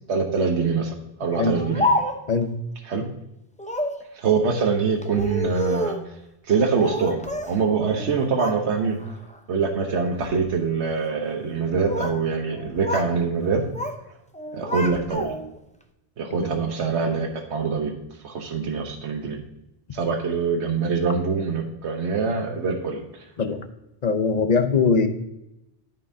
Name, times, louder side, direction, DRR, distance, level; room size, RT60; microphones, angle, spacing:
voice 1, 0.1-1.9 2.8-3.0 4.1-6.0 6.5-9.0 9.5-13.7 14.5-15.3 16.2-17.9 18.2-19.4 19.9-23.0, right 5 dB, 90° right, 4 dB, 1.3 m, -24 dB
Speech, 1.3-2.4 3.6-4.0 5.0-6.1 6.8-7.6 7.9-8.6 9.0-9.4 10.1-10.4 11.5-12.2 12.5-13.1 13.4-14.0 14.3-15.6, left 1 dB, 10° left, 0.6 m, -29 dB
voice 2, 24.0-25.1, left 5 dB, 45° left, 8 dB, 0.8 m, -21 dB
13.5 x 5.6 x 2.7 m, 0.88 s
omnidirectional pair, 1.1 m